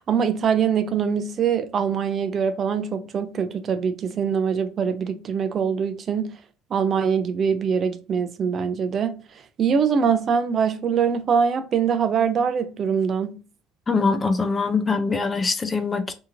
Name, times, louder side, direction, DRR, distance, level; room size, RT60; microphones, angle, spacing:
voice 1, 0.0-6.4 6.7-13.4, right 7 dB, 40° right, 0.4 m, -23 dB
voice 2, 13.9-16.1, left 4 dB, 25° left, 0.4 m, -23 dB
2.7 x 2.7 x 2.5 m
supercardioid pair, 105°, 0 cm